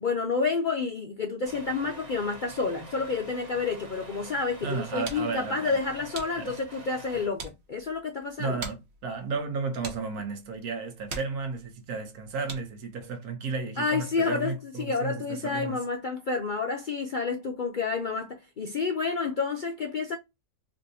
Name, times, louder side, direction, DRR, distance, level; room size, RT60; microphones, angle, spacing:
voice 1, 0.0-8.6 13.8-20.2, left 4 dB, 60° left, 0.5 m, -29 dB
Truck, 1.4-7.3, right 2 dB, 30° right, 1.2 m, -46 dB
voice 2, 4.6-5.8 6.3-6.5 8.4-15.8, right 4 dB, 85° right, 1.4 m, -33 dB
sound 1, 5.6-12.9, right 4 dB, 55° right, 1.1 m, -45 dB
4.1 x 2.7 x 2.7 m
omnidirectional pair, 1.5 m